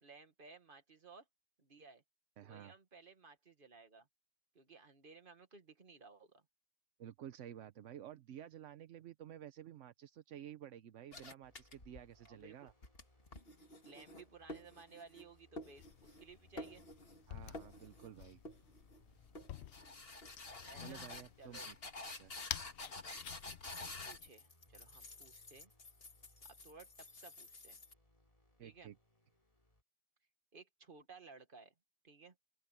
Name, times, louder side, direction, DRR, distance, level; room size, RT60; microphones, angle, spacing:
voice 1, 0.0-1.3 1.6-2.0 2.4-4.1 4.5-6.4 12.2-12.7 13.8-16.8 20.6-21.1 21.4-21.7 23.7-25.7 26.4-27.8 28.6-28.9 30.5-31.7 32.0-32.4, right 4 dB, 45° right, 2.0 m, -58 dB
voice 2, 2.4-2.7 7.0-12.7 17.3-18.4 20.8-21.7 22.1-22.3 28.6-29.0, right 10 dB, 80° right, 1.1 m, -52 dB
sound 1, 11.1-12.3 12.7-15.3 15.6-16.3 16.6-17.2 17.5-18.1 18.4-19.0 19.3-27.9, left 2 dB, 50° left, 2.3 m, -50 dB
sound 2, 11.4-29.8, left 1 dB, 30° left, 4.1 m, -70 dB
sound 3, 15.8-24.3, left 11 dB, 65° left, 0.9 m, -51 dB
open air
omnidirectional pair, 1.3 m